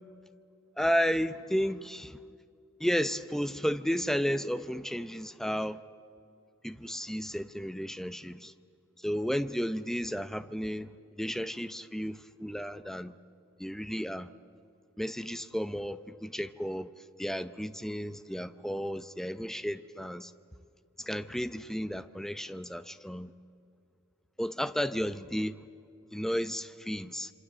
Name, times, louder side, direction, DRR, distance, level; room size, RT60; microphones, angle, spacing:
voice 1, 0.8-2.2 2.8-5.8 6.6-8.5 9.0-13.1 13.6-14.3 15.0-16.9 17.2-20.3 21.0-23.3 24.4-25.6 26.1-27.3, equal, ahead, 0.6 m, -33 dB
27.0 x 25.5 x 7.8 m
head